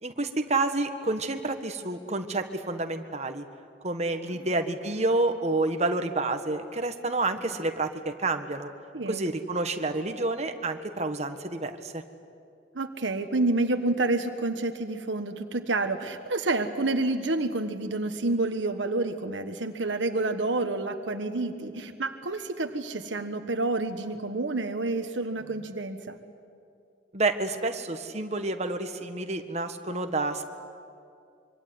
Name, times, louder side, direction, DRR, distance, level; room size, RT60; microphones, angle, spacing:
voice 1, 0.0-3.4 3.8-8.7 9.1-12.0 27.1-30.5, right 2 dB, 35° right, 7 dB, 1.6 m, -29 dB
voice 2, 8.9-9.2 12.7-26.2, right 2 dB, 80° right, 7 dB, 1.4 m, -29 dB
25.5 x 24.5 x 9.6 m, 2.5 s
head